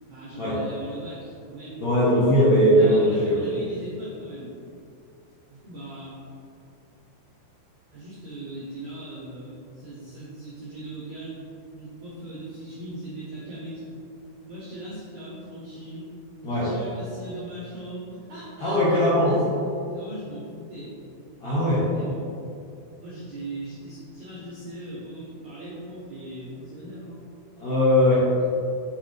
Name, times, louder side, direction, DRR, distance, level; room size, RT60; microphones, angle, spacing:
voice 1, 0.1-1.8 2.1-2.3 2.7-4.5 5.5-6.2 7.9-11.4 11.7-14.0 14.4-16.1 16.6-19.5 19.9-20.9 21.5-22.3 23.0-27.2 28.3-28.5, right 1 dB, 85° right, -7 dB, 1.6 m, -39 dB
voice 2, 1.8-3.4 16.4-16.7 18.6-19.4 21.4-21.8 27.6-28.2, equal, 60° left, -11 dB, 1.9 m, -20 dB
8.0 x 5.8 x 3.4 m, 2.6 s
omnidirectional pair, 5.6 m